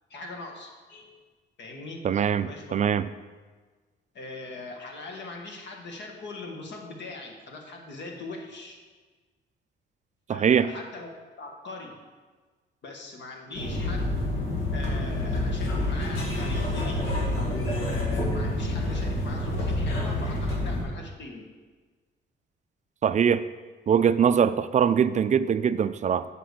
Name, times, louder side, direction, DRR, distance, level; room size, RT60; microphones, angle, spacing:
voice 1, 0.1-1.1 1.6-2.0 2.4-2.8 4.1-8.8 10.3-11.1 11.4-12.0 12.8-14.2 14.7-17.1 17.3-21.5, left 3 dB, 65° left, 2 dB, 1.6 m, -40 dB
voice 2, 2.0-3.1 10.3-10.7 23.0-23.4 23.9-26.3, right 8 dB, 40° right, 13 dB, 0.4 m, -22 dB
sound 1, 13.5-20.8, left 1 dB, 80° left, 2.0 m, -28 dB
7.8 x 5.0 x 6.6 m, 1.4 s
cardioid pair, 90°, 20 cm